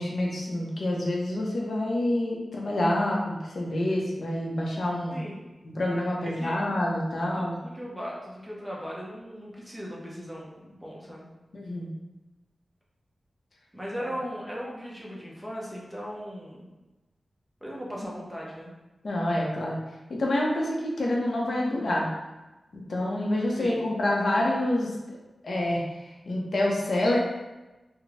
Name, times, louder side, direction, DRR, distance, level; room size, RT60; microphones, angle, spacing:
voice 1, 0.0-5.2 5.7-7.6 11.5-11.9 14.0-14.1 19.0-19.8 20.1-22.1 22.7-25.2 25.4-25.8 26.3-27.2, left 1 dB, 65° left, -2 dB, 0.8 m, -27 dB
voice 2, 6.2-6.5 7.3-11.3 13.7-16.7 17.6-18.7 23.6-23.8, equal, 10° right, -5 dB, 0.9 m, -38 dB
4.1 x 2.2 x 3.4 m, 1.1 s
wide cardioid pair, 115°, 0 cm